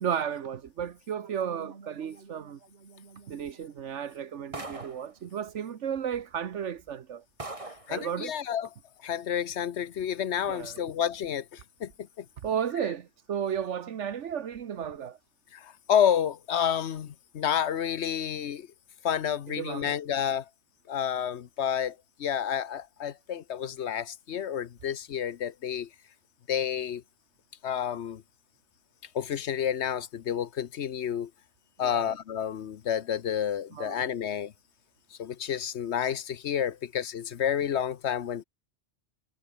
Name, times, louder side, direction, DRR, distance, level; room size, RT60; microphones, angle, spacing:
voice 1, 0.0-2.6 3.3-7.2 7.9-8.3 10.5-10.8 12.4-15.2 19.5-20.0 31.8-32.2 33.7-34.1, right 8 dB, 80° right, 1.3 m, -34 dB
sound 1, 1.2-6.1, right 4 dB, 60° right, 2.0 m, -54 dB
sound 2, 4.5-5.1 6.1-6.2 6.8-6.9 7.4-7.9, right 2 dB, 30° right, 2.2 m, -40 dB
voice 2, 7.9-8.7 9.0-11.9 12.2-12.3 15.5-18.7 19.0-20.5 20.9-25.9 26.5-27.0 27.6-28.2 29.1-31.3 31.8-34.5 35.1-38.4, left 9 dB, 70° left, 1.1 m, -30 dB
omnidirectional pair, 1.2 m